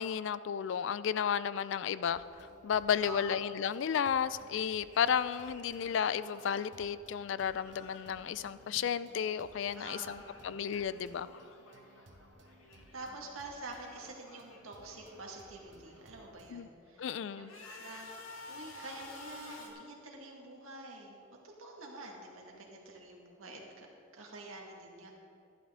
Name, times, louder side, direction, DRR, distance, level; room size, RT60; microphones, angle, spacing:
voice 1, 0.0-2.2 2.6-11.4 16.5-16.7 17.0-17.5, left 8 dB, 60° left, 16 dB, 0.3 m, -33 dB
sound 1, 1.2-9.2 9.4-13.2 13.5-16.2 16.7-19.7, left 3 dB, 85° left, 1.8 m, -54 dB
sound 2, 2.1-16.5, right 1 dB, 60° right, 0.9 m, -60 dB
voice 2, 3.0-3.4 9.8-10.3 12.9-17.1 17.4-21.2 21.4-23.9 24.1-25.1, right 2 dB, 90° right, 0 dB, 1.9 m, -47 dB
12.5 x 11.5 x 3.7 m, 2.6 s
head